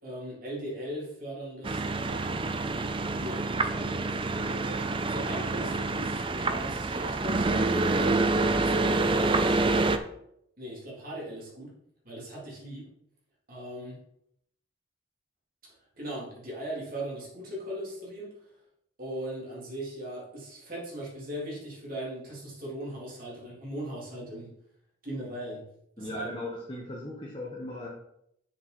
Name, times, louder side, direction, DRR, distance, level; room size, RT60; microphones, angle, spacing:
voice 1, 0.0-2.4 3.2-8.1 8.6-9.9 10.6-11.7 12.0-12.9 13.5-14.0 15.6-18.3 19.0-24.5 25.0-25.6 26.0-26.3, right 1 dB, 45° right, -6 dB, 3.5 m, -39 dB
sound 1, 1.6-10.0, right 3 dB, 25° right, 0.5 m, -27 dB
voice 2, 26.0-27.9, left 1 dB, 25° left, -3 dB, 1.3 m, -37 dB
7.3 x 6.6 x 4.4 m, 0.74 s
head